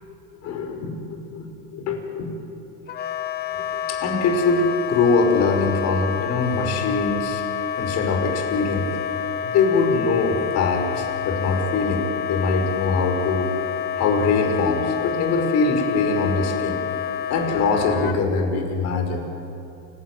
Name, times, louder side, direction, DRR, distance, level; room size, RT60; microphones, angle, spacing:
voice 1, 0.4-2.3 3.5-7.4 7.8-8.9 9.4-13.5 14.0-16.8 17.3-19.3, left 4 dB, 45° left, 4 dB, 5.4 m, -23 dB
Wind instrument woodwind instrument, 2.9-18.2, left 9 dB, 25° left, 0.9 m, -28 dB
29.0 x 17.0 x 9.3 m, 2.9 s
supercardioid pair, 135°, 36 cm